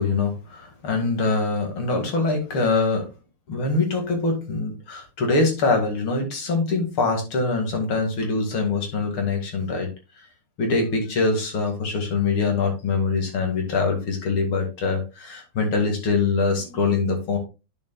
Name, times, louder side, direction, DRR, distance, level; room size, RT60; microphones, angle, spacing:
voice 1, 0.0-3.0 3.5-9.9 10.6-17.4, left 3 dB, 90° left, 3 dB, 2.9 m, -23 dB
10.0 x 6.8 x 2.3 m, 0.28 s
omnidirectional pair, 2.2 m